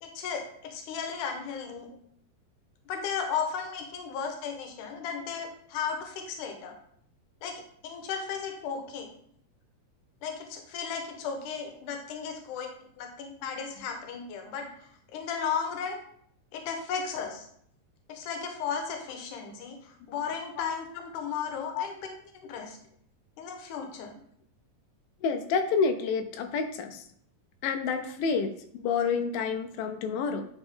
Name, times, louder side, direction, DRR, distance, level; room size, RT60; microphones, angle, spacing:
voice 1, 0.0-1.9 2.9-6.7 7.4-9.1 10.2-12.7 13.0-14.7 15.1-16.0 16.5-17.5 18.1-22.1 22.4-22.8 23.4-24.1, left 6 dB, 70° left, 4 dB, 2.4 m, -35 dB
voice 2, 25.2-27.1 27.6-30.5, left 5 dB, 90° left, 6 dB, 2.4 m, -29 dB
9.3 x 4.5 x 3.6 m, 0.65 s
omnidirectional pair, 4.0 m